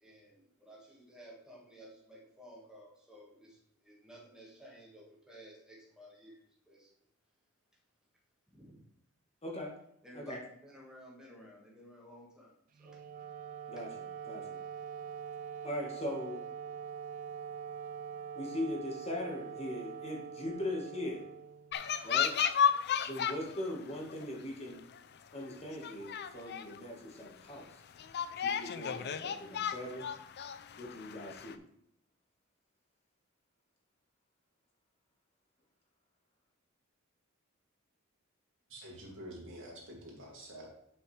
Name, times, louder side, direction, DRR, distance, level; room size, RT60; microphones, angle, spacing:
voice 1, 0.0-6.9 8.5-8.8 10.0-13.0 13.8-13.9, equal, 5° right, -3 dB, 1.6 m, -55 dB
Wind instrument woodwind instrument, 12.7-22.1, right 7 dB, 40° right, 0.3 m, -44 dB
voice 2, 14.2-14.6 15.6-16.4 18.3-21.2 22.0-22.3 23.1-24.8 25.3-27.8 28.4-30.1 30.8-31.6, left 1 dB, 30° left, 0 dB, 1.4 m, -40 dB
sound 1, 21.7-23.6 23.9-24.3 24.9-25.0 25.4-25.5 25.8-26.8 27.3-27.4 28.0-31.6, left 8 dB, 50° left, 0.4 m, -33 dB
voice 3, 38.7-40.7, right 1 dB, 65° right, -2 dB, 2.5 m, -47 dB
7.8 x 6.2 x 3.2 m, 0.73 s
head